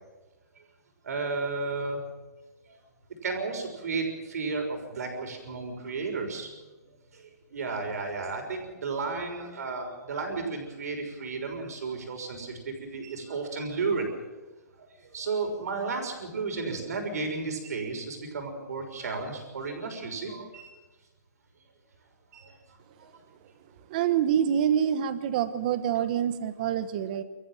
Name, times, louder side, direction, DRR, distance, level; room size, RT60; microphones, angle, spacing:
voice 1, 1.0-2.0 2.7-2.8 3.2-6.5 7.1-14.1 15.1-20.7 22.3-22.6 23.0-23.1, right 4 dB, 60° right, 4 dB, 6.3 m, -33 dB
voice 2, 23.9-27.2, right 9 dB, 30° right, 12 dB, 1.1 m, -26 dB
25.5 x 14.5 x 7.6 m, 1.2 s
hypercardioid pair, 170°, 10 cm